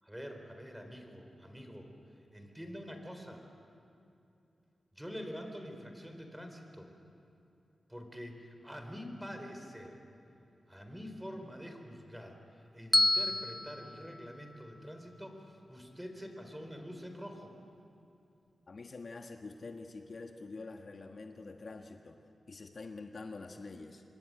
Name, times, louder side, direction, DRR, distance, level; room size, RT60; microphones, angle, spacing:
voice 1, 0.0-1.9 2.3-3.4 4.9-6.9 7.9-10.0 10.7-17.5, equal, 5° right, 4 dB, 4.5 m, -46 dB
Bell, 12.9-15.1, left 1 dB, 15° left, 0.7 m, -31 dB
voice 2, 18.7-22.2 22.5-24.0, left 3 dB, 55° left, 4 dB, 1.5 m, -46 dB
26.5 x 23.0 x 9.3 m, 2.7 s
wide cardioid pair, 80°, 0 cm